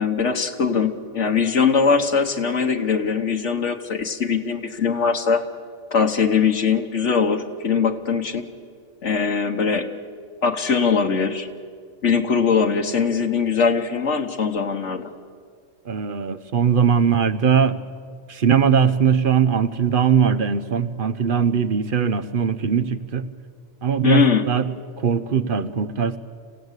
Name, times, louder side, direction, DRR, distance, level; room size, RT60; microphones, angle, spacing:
voice 1, 0.0-5.4 5.9-8.4 9.0-9.9 10.4-11.5 12.0-15.1 24.0-24.4, left 6 dB, 65° left, 6 dB, 1.4 m, -21 dB
voice 2, 15.9-17.8 18.3-23.3 23.8-24.7 25.0-26.2, right 7 dB, 50° right, 13 dB, 0.8 m, -20 dB
27.0 x 16.0 x 8.1 m, 2.1 s
omnidirectional pair, 1.3 m